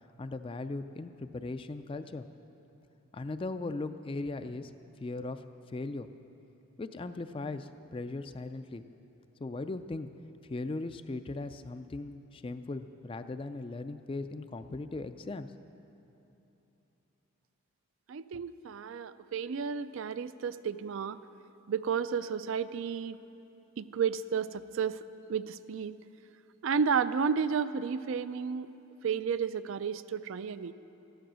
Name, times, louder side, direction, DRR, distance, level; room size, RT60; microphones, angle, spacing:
voice 1, 0.2-2.3 3.1-4.7 5.0-5.4 5.7-6.1 6.8-8.8 9.4-10.1 10.4-15.5, left 2 dB, 25° left, 10 dB, 0.3 m, -38 dB
voice 2, 18.1-21.2 21.7-23.2 23.8-25.0 25.3-26.0 26.6-28.7 29.0-30.7, right 6 dB, 65° right, 15 dB, 0.4 m, -32 dB
14.5 x 10.5 x 6.2 m, 3.0 s
head